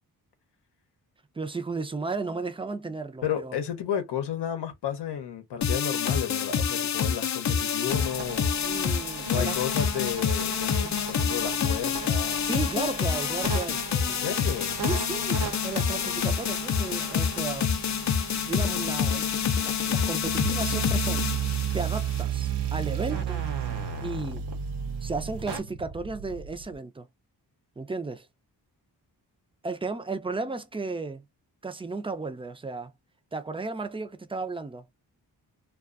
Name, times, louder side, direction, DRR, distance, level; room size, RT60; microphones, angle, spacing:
voice 1, 1.3-3.6 8.6-9.6 10.8-11.0 12.4-13.8 14.8-17.7 18.3-19.3 19.6-21.3 21.7-23.4 24.0-24.5 25.0-27.1 27.8-28.3 29.6-31.2 31.6-32.9 33.3-34.9, right 3 dB, 15° right, 0.4 m, -34 dB
voice 2, 3.2-8.5 9.3-12.4 14.1-14.8 16.0-16.1, left 9 dB, 80° left, 0.7 m, -32 dB
sound 1, 5.6-22.2, left 7 dB, 45° left, 0.5 m, -27 dB
sound 2, 7.9-25.6, right 4 dB, 85° right, 0.9 m, -39 dB
sound 3, 20.2-26.8, right 9 dB, 70° right, 0.5 m, -31 dB
2.4 x 2.3 x 2.4 m
cardioid pair, 65°, 41 cm